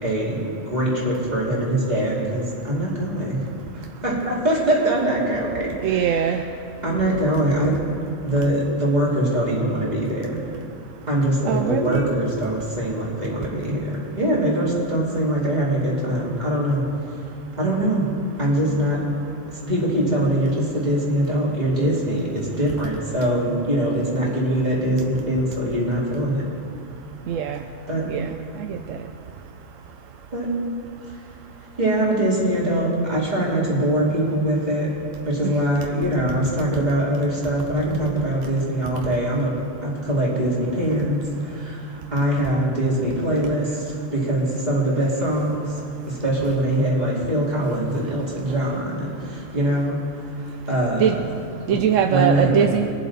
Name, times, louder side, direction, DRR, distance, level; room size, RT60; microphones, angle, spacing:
voice 1, 0.0-3.4 4.0-6.3 6.8-7.7 8.2-10.4 11.1-16.8 17.6-18.1 18.4-19.0 19.5-26.4 27.9-28.0 30.3-30.5 31.8-34.9 35.2-39.5 39.8-45.8 46.1-50.0 50.7-51.3 51.7-51.8 52.1-52.6, right 1 dB, 35° right, -6 dB, 2.9 m, -23 dB
voice 2, 5.8-6.4 11.5-12.1 27.3-27.6 28.1-28.3 28.6-29.0 35.4-35.5 51.0-51.1 51.7-52.9, right 9 dB, 85° right, 5 dB, 1.0 m, -21 dB
22.0 x 7.4 x 4.2 m, 2.7 s
omnidirectional pair, 1.3 m